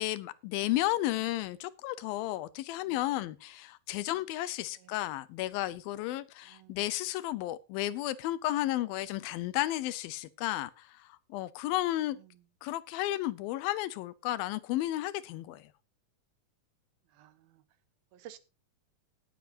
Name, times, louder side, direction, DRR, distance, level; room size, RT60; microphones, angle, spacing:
voice 1, 0.0-12.2 12.6-15.7, left 15 dB, 90° left, 2.6 m, -33 dB
voice 2, 6.4-6.9 12.2-12.4 17.1-17.6 18.1-18.4, right 12 dB, 85° right, 3.0 m, -54 dB
18.5 x 7.9 x 2.8 m
omnidirectional pair, 4.1 m